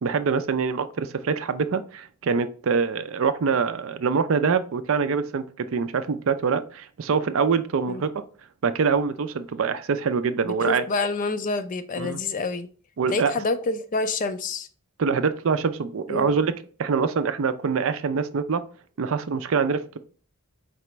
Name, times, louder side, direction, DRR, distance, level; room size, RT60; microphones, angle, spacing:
voice 1, 0.0-8.2 8.6-10.9 12.0-12.2 13.0-13.3 15.0-16.5 16.8-18.6 19.0-20.0, right 5 dB, 60° right, 0.4 m, -24 dB
voice 2, 10.4-12.7 13.1-14.7 16.1-16.3, left 3 dB, 35° left, 0.4 m, -27 dB
4.9 x 3.3 x 3.0 m
head